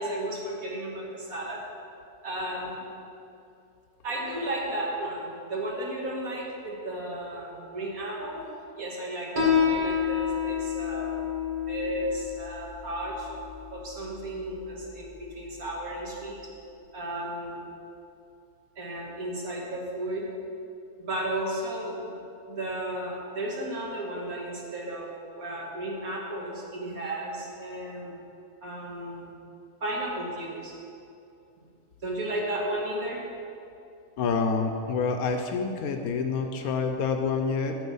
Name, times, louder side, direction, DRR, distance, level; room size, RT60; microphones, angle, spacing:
voice 1, 0.0-1.6 2.2-2.8 4.0-8.5 8.8-11.3 11.7-13.3 13.7-16.5 16.9-17.7 18.8-20.3 21.0-22.1 22.5-28.2 28.6-29.4 29.8-30.7 32.0-33.2, right 1 dB, 70° right, -3 dB, 2.1 m, -34 dB
Piano, 9.4-16.4, left 7 dB, 35° right, 1.3 m, -30 dB
voice 2, 34.2-37.8, left 5 dB, 80° left, 5 dB, 1.1 m, -27 dB
9.4 x 7.3 x 5.5 m, 2.6 s
omnidirectional pair, 1.6 m